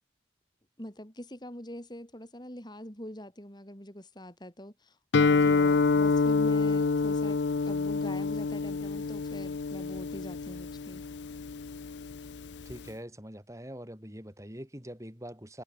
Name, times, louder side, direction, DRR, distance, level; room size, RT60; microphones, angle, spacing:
voice 1, 0.8-7.4 7.6-11.0, left 1 dB, 25° left, 4.5 m, -44 dB
Guitar, 5.1-12.9, left 4 dB, 85° left, 0.6 m, -27 dB
voice 2, 12.7-15.6, equal, 15° right, 6.2 m, -44 dB
head